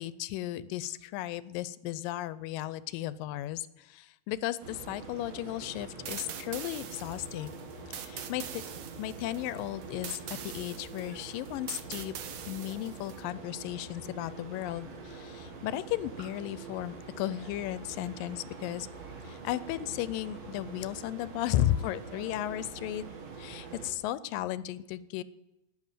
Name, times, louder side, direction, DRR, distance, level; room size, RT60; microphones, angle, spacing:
voice 1, 0.0-7.6 7.9-8.6 9.0-12.2 12.5-18.9 19.2-23.1 23.4-25.2, left 13 dB, 80° left, 16 dB, 2.3 m, -35 dB
sound 1, 4.6-23.9, right 4 dB, 55° right, 2.8 m, -45 dB
sound 2, 6.0-13.2, right 8 dB, 85° right, 1.3 m, -43 dB
11.5 x 10.0 x 9.1 m, 0.95 s
omnidirectional pair, 4.0 m